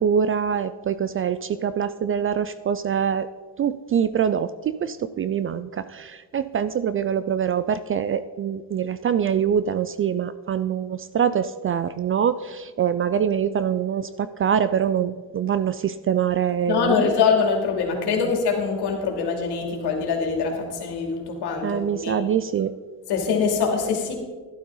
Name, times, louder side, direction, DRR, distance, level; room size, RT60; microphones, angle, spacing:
voice 1, 0.0-3.3 3.6-17.0 21.6-22.7, right 8 dB, 30° right, 14 dB, 0.4 m, -24 dB
voice 2, 16.7-22.2 23.1-24.1, left 5 dB, 65° left, 2 dB, 2.7 m, -23 dB
12.0 x 11.5 x 3.9 m, 1.4 s
supercardioid pair, 95°, 42 cm